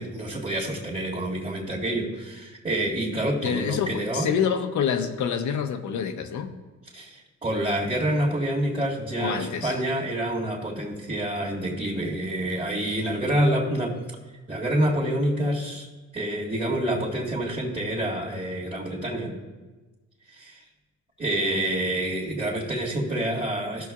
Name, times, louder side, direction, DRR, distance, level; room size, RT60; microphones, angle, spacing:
voice 1, 0.0-4.3 6.9-13.9 14.5-15.9 16.1-19.4 20.4-20.6 21.2-23.9, right 1 dB, 25° right, -8 dB, 2.1 m, -27 dB
voice 2, 3.4-6.5 9.2-9.8, left 7 dB, 70° left, 7 dB, 0.8 m, -27 dB
15.0 x 6.4 x 2.4 m, 1.2 s
cardioid pair, 90°, 30 cm